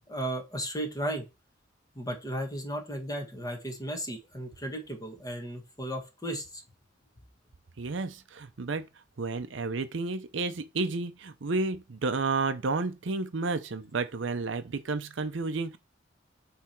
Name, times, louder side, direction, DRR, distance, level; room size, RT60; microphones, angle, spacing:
voice 1, 0.1-1.2 1.9-6.6, right 1 dB, 20° left, 1.6 m, -35 dB
voice 2, 7.8-8.9 9.2-15.8, right 3 dB, 70° right, 0.6 m, -31 dB
8.4 x 3.4 x 4.5 m
head